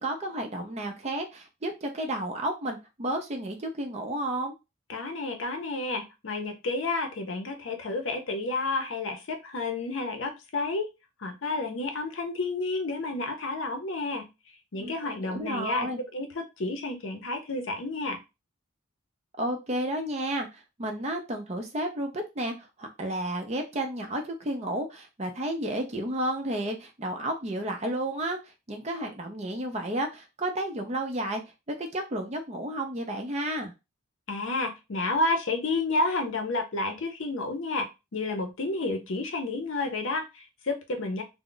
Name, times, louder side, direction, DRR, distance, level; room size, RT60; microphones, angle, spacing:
voice 1, 0.0-4.5 14.8-14.9 15.2-16.0 19.4-31.4 31.7-33.7, right 1 dB, 30° right, 4 dB, 0.5 m, -32 dB
voice 2, 4.9-10.9 11.2-14.3 14.7-18.2 34.3-41.2, left 2 dB, 65° left, 5 dB, 0.6 m, -30 dB
2.3 x 2.0 x 3.7 m, 0.25 s
head